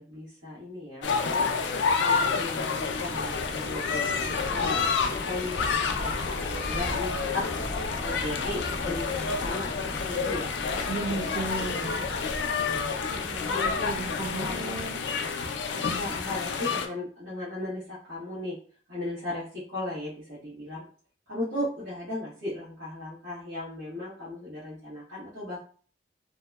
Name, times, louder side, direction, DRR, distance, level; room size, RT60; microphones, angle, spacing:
voice 1, 0.0-7.5 8.0-9.7 10.0-10.5 12.6-14.8 15.8-18.6 18.9-20.8 21.3-25.6, left 1 dB, 80° right, -11 dB, 1.1 m, -37 dB
sound 1, 1.0-16.9, left 5 dB, 80° left, 0.3 m, -29 dB
sound 2, 2.2-14.3, equal, 20° left, 0.4 m, -39 dB
voice 2, 10.9-12.1 13.8-15.1, right 3 dB, 50° right, -4 dB, 0.5 m, -34 dB
2.7 x 2.0 x 2.2 m, 0.43 s
head